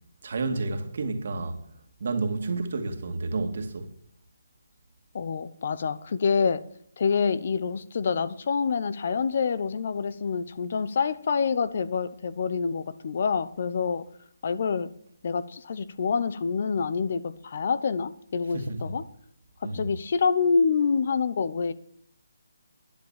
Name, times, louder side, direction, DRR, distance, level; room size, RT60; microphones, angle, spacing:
voice 1, 0.2-1.6 2.0-3.9 18.5-18.8 19.6-19.9, right 3 dB, 55° right, 2.2 m, -30 dB
voice 2, 5.1-6.6 7.0-14.1 14.4-14.9 15.2-19.0 19.6-21.7, left 5 dB, 50° left, 0.8 m, -27 dB
11.0 x 10.5 x 7.4 m
hypercardioid pair, 160°, 0 cm